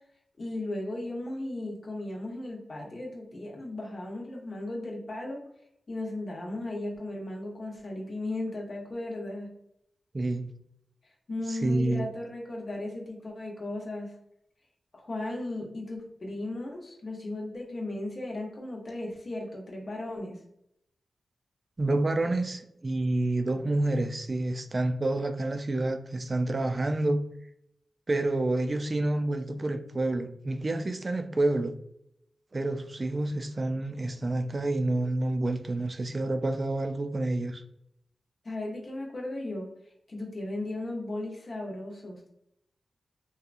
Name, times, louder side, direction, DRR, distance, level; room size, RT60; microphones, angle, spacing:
voice 1, 0.4-5.4 5.9-9.5 11.3-14.2 14.9-20.4 38.4-39.7 40.1-42.3, left 2 dB, 55° left, 0.8 m, -36 dB
voice 2, 10.1-10.5 11.5-12.1 21.8-27.2 28.1-31.7 32.5-37.6, right 2 dB, 45° right, 0.3 m, -28 dB
2.8 x 2.2 x 2.5 m
cardioid pair, 45°, 0 cm